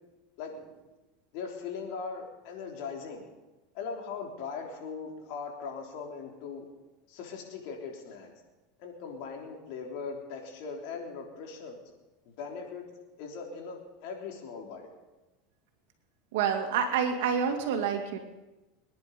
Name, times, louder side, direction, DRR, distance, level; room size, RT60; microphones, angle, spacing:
voice 1, 1.3-3.2 3.7-6.7 7.1-8.3 8.8-11.8 12.2-12.8 13.2-14.9, left 5 dB, 65° left, 1 dB, 3.3 m, -39 dB
voice 2, 16.3-18.2, right 7 dB, 75° right, 5 dB, 2.3 m, -28 dB
22.5 x 10.5 x 5.3 m, 1.1 s
supercardioid pair, 120°, 0 cm